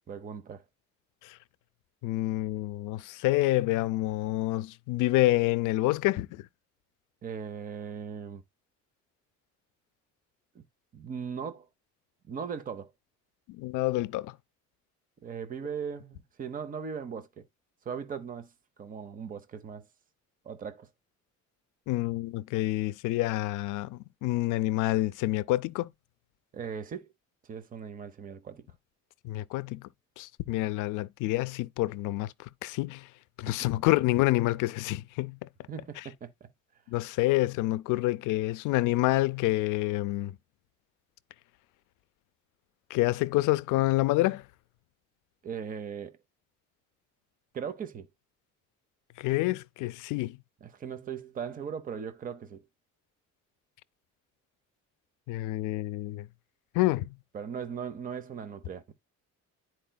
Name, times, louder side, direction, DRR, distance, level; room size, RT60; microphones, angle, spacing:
voice 1, 0.1-0.6 7.2-8.4 10.5-10.6 10.9-11.7 12.2-12.9 15.2-17.4 17.8-18.5 18.8-19.8 20.4-20.9 26.5-27.1 27.5-28.6 33.5-33.6 35.7-36.5 45.4-46.2 47.5-48.1 50.6-52.7 57.3-59.0, right 7 dB, 30° right, 0.7 m, -38 dB
voice 2, 2.0-6.5 13.5-14.3 21.9-25.9 29.2-29.9 30.2-33.1 33.4-35.5 36.9-40.4 42.9-44.4 49.2-50.4 55.3-56.3 56.7-57.2, left 17 dB, 85° left, 0.5 m, -28 dB
10.5 x 4.5 x 2.2 m
cardioid pair, 160°, 30 cm